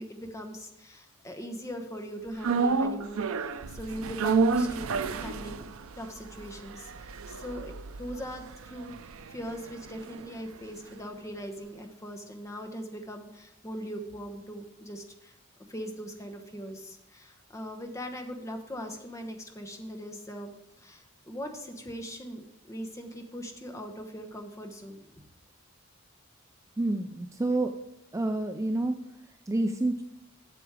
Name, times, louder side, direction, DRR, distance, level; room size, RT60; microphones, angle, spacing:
voice 1, 0.0-5.6 6.0-15.3 15.7-25.2, equal, 15° left, 4 dB, 1.0 m, -40 dB
sound 1, 2.4-10.7 11.0-11.1, right 4 dB, 85° right, 0.5 m, -31 dB
voice 2, 26.8-27.7 28.1-29.0 29.2-30.0, right 2 dB, 15° right, 6 dB, 0.3 m, -28 dB
8.3 x 7.0 x 4.8 m, 0.85 s
head